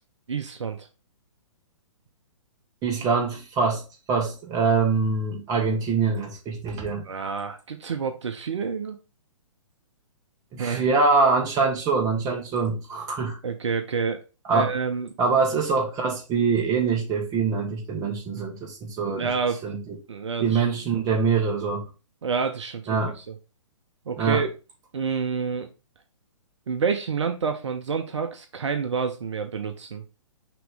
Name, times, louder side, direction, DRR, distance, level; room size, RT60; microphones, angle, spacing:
voice 1, 0.3-0.9 7.0-9.0 10.6-10.8 12.3-12.4 13.4-14.2 14.5-15.1 19.0-19.6 20.1-20.6 22.2-23.3 24.1-24.5 24.9-25.7 26.7-30.0, right 5 dB, 65° right, 0.8 m, -28 dB
voice 2, 2.8-3.8 4.1-7.0 10.5-13.4 14.5-14.7 15.2-19.3 19.6-19.9 20.4-21.9 22.9-23.1 24.2-24.4, right 4 dB, 20° right, 1.6 m, -24 dB
6.0 x 3.1 x 5.2 m
figure-of-eight pair, 125°, 16 cm